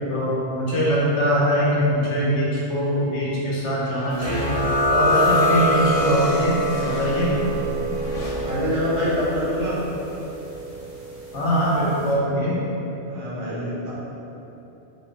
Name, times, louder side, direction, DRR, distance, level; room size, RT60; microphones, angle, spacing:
voice 1, 0.1-4.4 4.9-7.4 11.3-12.6, equal, 85° left, -7 dB, 1.2 m, -22 dB
sound 1, 3.7-9.9, equal, 60° left, 0.4 m, -35 dB
sound 2, 4.2-11.5, equal, 40° right, 0.6 m, -24 dB
voice 2, 8.4-9.8 13.0-13.9, equal, 75° right, -7 dB, 1.2 m, -25 dB
3.6 x 2.1 x 3.8 m, 3.0 s
omnidirectional pair, 1.2 m